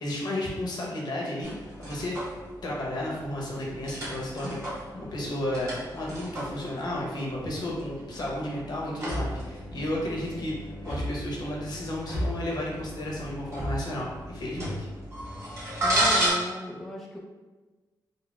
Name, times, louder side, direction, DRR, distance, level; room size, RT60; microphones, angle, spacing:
voice 1, 0.0-2.3 2.6-14.9, left 1 dB, 60° left, -3 dB, 0.8 m, -33 dB
sound 1, 1.4-16.3, right 1 dB, 35° right, 1.1 m, -33 dB
voice 2, 15.8-17.2, left 1 dB, ahead, -2 dB, 0.3 m, -36 dB
3.9 x 2.0 x 2.3 m, 1.2 s
wide cardioid pair, 120°, 8 cm